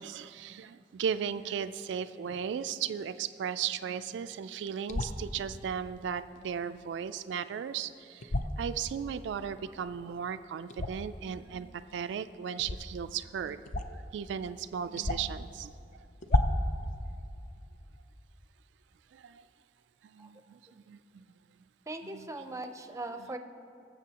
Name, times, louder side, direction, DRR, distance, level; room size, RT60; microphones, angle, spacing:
voice 1, 0.0-13.6 13.9-15.7 16.3-16.4 19.1-19.4 20.0-21.3 22.1-22.3, right 7 dB, 80° right, 12 dB, 0.3 m, -36 dB
sound 1, 4.9-5.2 8.2-8.5 10.7-11.1 12.6-12.8 13.6-14.0 14.4-14.5 15.0-15.4 16.2-16.7, left 1 dB, 45° left, 0.5 m, -30 dB
voice 2, 21.9-23.4, right 2 dB, 15° right, 7 dB, 0.5 m, -40 dB
22.5 x 7.5 x 2.9 m, 2.5 s
head